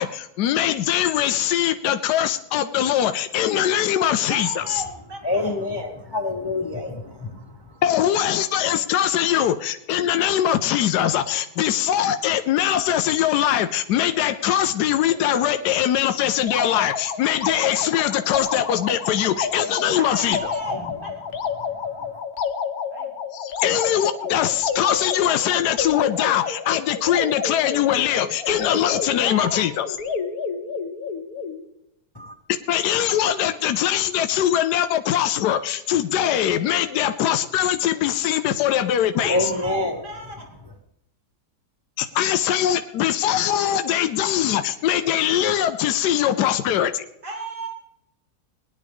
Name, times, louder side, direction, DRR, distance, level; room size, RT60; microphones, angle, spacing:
voice 1, 0.0-4.8 7.8-20.4 23.3-30.0 32.7-39.5 42.0-47.0, left 11 dB, 85° left, 10 dB, 1.2 m, -22 dB
voice 2, 4.2-5.6 19.9-21.1 22.9-23.1 29.2-29.6 39.2-40.3 47.2-47.7, right 1 dB, 50° right, -1 dB, 3.3 m, -34 dB
voice 3, 5.2-7.8 20.7-21.1 32.1-32.4 39.3-40.0, left 2 dB, 20° left, 3 dB, 0.9 m, -27 dB
sound 1, 16.4-31.6, left 5 dB, 70° left, 1.4 m, -30 dB
19.5 x 10.5 x 3.5 m, 0.84 s
omnidirectional pair, 1.7 m